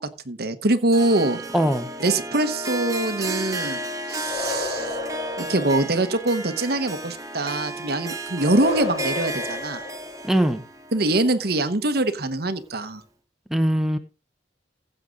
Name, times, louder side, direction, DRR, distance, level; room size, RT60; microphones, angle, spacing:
voice 1, 0.3-1.4 2.0-4.9 5.4-9.8 10.9-13.0, right 2 dB, 60° right, 11 dB, 1.1 m, -23 dB
Harp, 0.9-12.2, right 1 dB, 20° right, 1.4 m, -33 dB
voice 2, 1.5-1.9 10.2-10.6 13.5-14.0, equal, ahead, 6 dB, 1.1 m, -21 dB
sound 1, 4.2-6.3 8.4-10.5, left 4 dB, 60° left, 6.6 m, -32 dB
16.0 x 6.6 x 3.9 m, 0.31 s
head